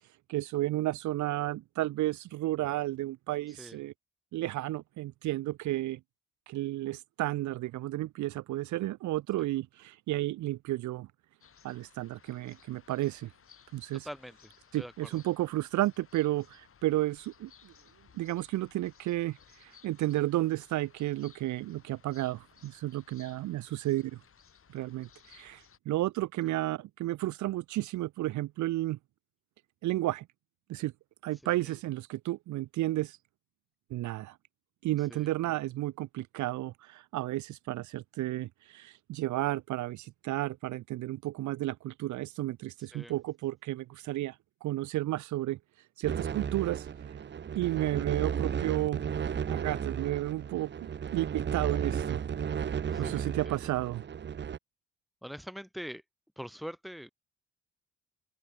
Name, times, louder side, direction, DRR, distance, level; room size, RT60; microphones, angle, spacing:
voice 1, 0.3-3.9 4.3-6.0 6.5-11.1 11.6-13.3 13.7-14.1 14.7-17.7 18.1-24.2 24.7-29.0 29.8-30.3 30.7-30.9 31.2-33.2 33.9-34.4 34.8-45.6 46.0-46.9 47.6-49.0 49.5-50.7 51.1-52.2 53.0-54.0, right 16 dB, 70° right, 0.6 m, -32 dB
sound 1, 11.4-25.8, left 7 dB, 45° left, 3.2 m, -60 dB
voice 2, 13.9-14.5 14.8-15.2 26.4-26.5 31.4-31.7 35.1-35.3 42.9-43.1 52.9-53.7 55.2-56.0 56.4-57.1, equal, ahead, 2.6 m, -44 dB
sound 2, 46.0-54.6, right 8 dB, 35° right, 0.8 m, -34 dB
open air
cardioid pair, 90°, 30 cm